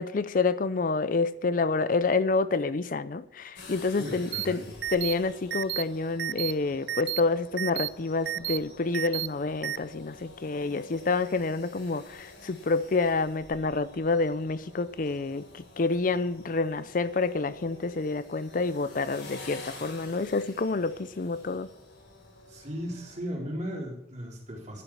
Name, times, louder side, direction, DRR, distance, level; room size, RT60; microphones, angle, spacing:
voice 1, 0.0-4.6 4.9-21.7, left 3 dB, 50° left, 0.5 m, -28 dB
sound 1, 3.6-23.2, left 2 dB, 85° left, 3.7 m, -49 dB
voice 2, 4.0-4.8 22.5-24.8, equal, 40° right, 3.9 m, -36 dB
sound 2, 4.3-4.5 4.8-5.1 5.5-5.8 6.2-6.5 6.9-7.2 7.6-7.9 8.3-8.6 8.9-9.3 9.6-9.8, right 14 dB, 80° right, 0.4 m, -31 dB
11.5 x 7.0 x 8.5 m
head